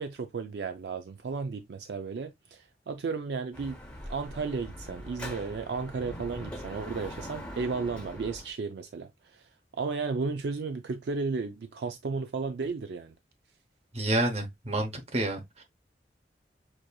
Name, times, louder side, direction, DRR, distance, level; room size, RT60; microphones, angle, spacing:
voice 1, 0.0-3.8 4.1-9.4 9.8-13.1, right 4 dB, 70° right, 0.4 m, -34 dB
Dog / Motorcycle, 3.5-8.5, equal, 5° left, 0.8 m, -42 dB
voice 2, 13.9-15.6, right 1 dB, 35° right, 0.9 m, -29 dB
6.1 x 2.7 x 2.3 m
head